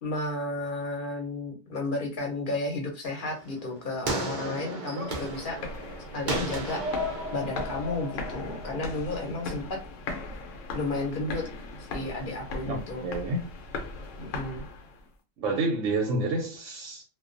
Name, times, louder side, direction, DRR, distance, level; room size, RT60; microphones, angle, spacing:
voice 1, 0.0-5.6 6.1-6.8 7.3-9.8 10.7-11.5 11.9-13.1 14.2-14.6, left 2 dB, 50° left, 0.8 m, -32 dB
sound 1, 3.2-9.3, right 1 dB, 55° right, 0.6 m, -35 dB
sound 2, 5.0-15.1, left 3 dB, 80° left, 1.0 m, -38 dB
voice 2, 12.7-13.4 15.4-17.0, right 2 dB, 90° right, 0.9 m, -29 dB
2.2 x 2.2 x 2.5 m
omnidirectional pair, 1.3 m